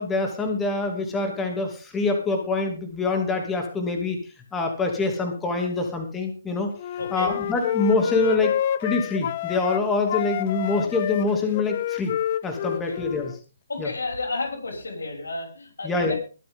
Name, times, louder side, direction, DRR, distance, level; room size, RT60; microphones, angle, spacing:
voice 1, 0.0-4.2 4.5-6.7 7.1-8.5 8.8-12.1 12.4-13.3 13.8-13.9 15.8-16.1, left 3 dB, 10° left, 3 dB, 2.8 m, -25 dB
Wind instrument woodwind instrument, 6.8-9.8 10.1-13.4, left 11 dB, 45° left, 0.6 m, -29 dB
voice 2, 7.0-7.3 12.8-13.0 13.7-16.2, left 3 dB, 85° left, 1 dB, 6.4 m, -31 dB
22.0 x 7.9 x 3.9 m, 0.36 s
hypercardioid pair, 145°, 0 cm